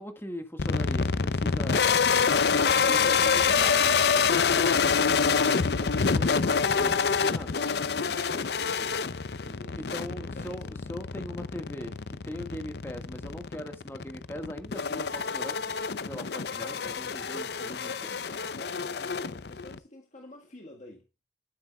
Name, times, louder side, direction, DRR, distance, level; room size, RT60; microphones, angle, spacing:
voice 1, 0.0-2.0 2.4-7.5 9.7-15.6 16.1-18.2, equal, 15° left, 1.6 m, -41 dB
sound 1, 0.6-19.8, left 5 dB, 65° left, 0.6 m, -27 dB
voice 2, 6.3-10.8 18.5-21.1, left 1 dB, 40° left, 1.6 m, -49 dB
12.5 x 9.5 x 2.3 m
head